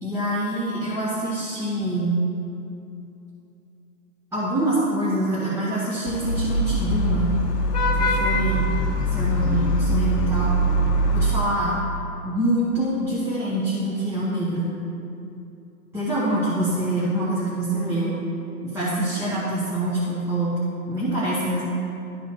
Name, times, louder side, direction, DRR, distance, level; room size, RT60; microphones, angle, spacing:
voice 1, 0.0-2.2 4.3-7.3 7.9-8.7 9.1-10.5 11.1-11.8 12.2-14.7 15.9-18.2 18.6-20.5 20.9-21.6, right 1 dB, 5° right, -10 dB, 1.0 m, -25 dB
Vehicle horn car horn honking / Traffic noise roadway noise, 6.1-11.4, equal, 85° left, 1.1 m, -22 dB
11.5 x 4.1 x 5.8 m, 2.8 s
hypercardioid pair, 140°, 46 cm